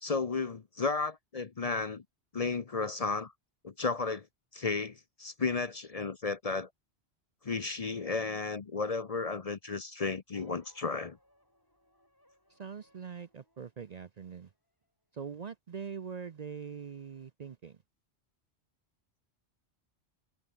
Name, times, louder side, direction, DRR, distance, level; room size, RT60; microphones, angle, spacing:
voice 1, 0.0-2.0 2.3-3.3 3.6-4.3 4.5-6.7 7.4-11.2, left 4 dB, 40° left, 0.7 m, -33 dB
sound 1, 10.3-14.9, equal, 20° left, 6.5 m, -68 dB
voice 2, 12.5-14.5 15.1-17.8, right 6 dB, 45° right, 0.6 m, -43 dB
omnidirectional pair, 1.1 m